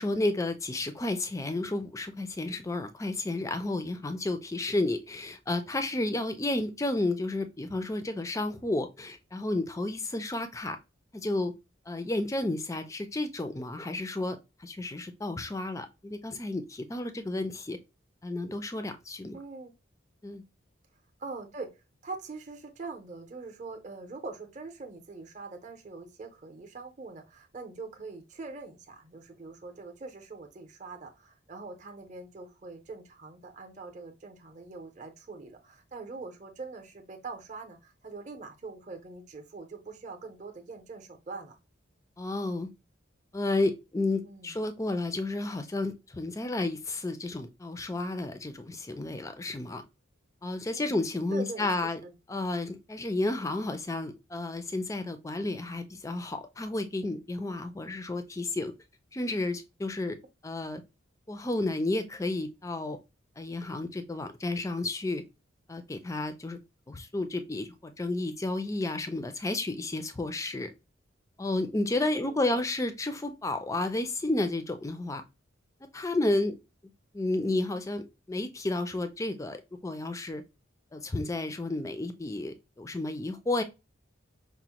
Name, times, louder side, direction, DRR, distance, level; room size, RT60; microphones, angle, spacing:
voice 1, 0.0-10.8 11.1-11.5 11.9-17.8 18.2-19.4 20.2-20.4 42.2-42.7 43.3-49.8 50.4-52.0 52.3-58.7 59.1-60.2 60.4-60.8 61.3-63.0 63.4-65.2 65.7-66.6 66.9-70.7 71.4-75.2 75.8-76.6 77.1-80.4 80.9-83.6, left 2 dB, 15° left, 0.3 m, -32 dB
voice 2, 19.3-19.7 21.2-21.7 22.0-41.6 44.2-44.6 50.8-51.0 51.3-52.1 72.1-72.6, right 3 dB, 35° right, 0.6 m, -43 dB
5.0 x 2.1 x 2.9 m
head